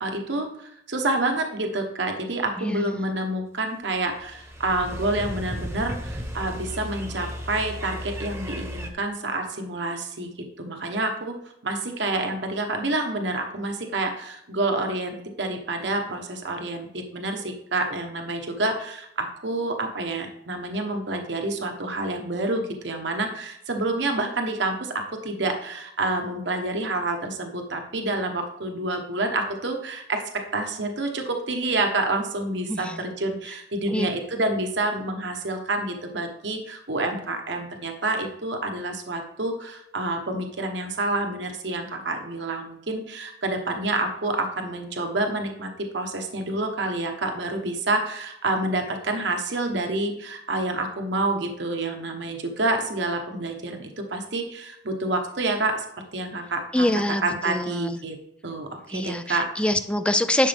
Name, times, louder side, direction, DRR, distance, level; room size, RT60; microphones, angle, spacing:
voice 1, 0.0-24.9 25.2-30.2 30.5-55.8 56.1-56.9 57.2-58.2 58.4-59.5, right 2 dB, 65° right, 3 dB, 1.2 m, -28 dB
voice 2, 2.6-3.1 32.7-33.0 33.9-34.1 56.7-58.0 58.9-60.5, left 1 dB, 5° left, 10 dB, 0.5 m, -25 dB
sound 1, 3.9-8.9, equal, 15° right, 1.2 m, -35 dB
11.0 x 6.8 x 3.5 m, 0.74 s
head